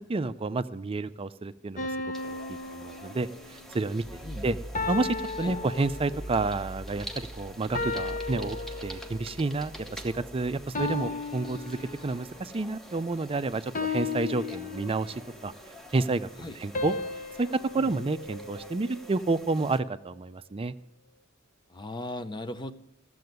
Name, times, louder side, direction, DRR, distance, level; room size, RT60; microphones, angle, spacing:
voice 1, 0.1-2.4 2.7-4.6 4.9-8.6 8.8-15.5 15.9-16.9 17.4-17.5 17.7-20.7, right 3 dB, 30° right, 13 dB, 0.4 m, -30 dB
sound 1, 1.8-3.7 4.7-6.4 7.7-9.3 10.7-12.4 13.7-15.4 16.7-19.1, left 4 dB, 40° left, 1.1 m, -35 dB
sound 2, 2.1-19.8, equal, ahead, 1.0 m, -47 dB
sound 3, 4.0-12.7, right 1 dB, 85° left, 4.9 m, -44 dB
voice 2, 4.2-4.6 5.4-5.6 16.4-16.6 17.8-17.9 21.7-22.7, left 1 dB, 20° left, 10 dB, 0.6 m, -37 dB
13.5 x 7.7 x 9.4 m, 0.88 s
head